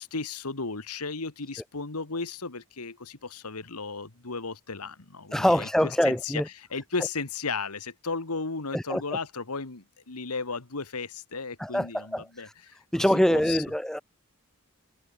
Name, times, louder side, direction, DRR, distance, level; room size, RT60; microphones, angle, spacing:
voice 1, 0.0-13.6, left 4 dB, 85° left, 1.9 m, -35 dB
voice 2, 5.3-6.5 8.7-9.0 11.6-12.3 12.9-14.0, equal, ahead, 0.3 m, -24 dB
head